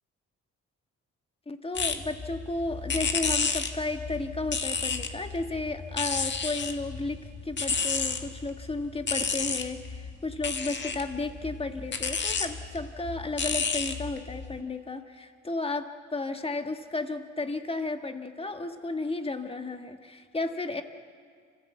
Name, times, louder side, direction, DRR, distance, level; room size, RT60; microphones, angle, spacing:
voice 1, 1.4-20.8, left 2 dB, 20° left, 7 dB, 1.7 m, -33 dB
sound 1, 1.8-14.6, left 5 dB, 35° left, 1.7 m, -32 dB
27.0 x 15.5 x 8.1 m, 2.1 s
cardioid pair, 90°, 30 cm